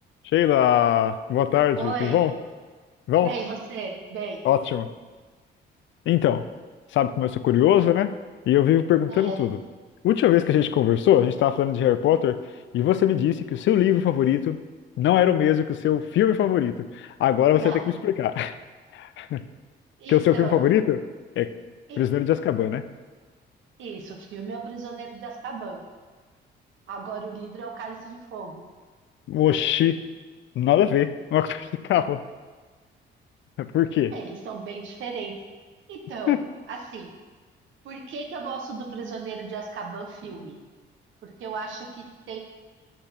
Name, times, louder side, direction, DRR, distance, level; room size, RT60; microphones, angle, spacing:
voice 1, 0.3-2.3 3.1-3.3 4.4-4.9 6.1-6.4 6.9-8.1 8.5-9.6 10.0-12.4 12.7-14.6 15.0-18.5 18.9-19.4 20.1-21.0 21.4-21.5 22.0-22.8 29.3-30.0 30.6-32.2 33.6-34.1 36.3-36.4, left 11 dB, 70° left, 12 dB, 0.5 m, -21 dB
voice 2, 1.8-2.2 3.2-4.4 9.1-9.4 17.5-17.8 20.0-20.7 21.9-22.0 23.8-25.8 26.9-28.6 34.1-35.3 35.9-37.1 37.8-40.6 41.2-42.4, right 4 dB, 75° right, 2 dB, 1.3 m, -35 dB
6.7 x 6.1 x 5.9 m, 1.4 s
cardioid pair, 90°, 20 cm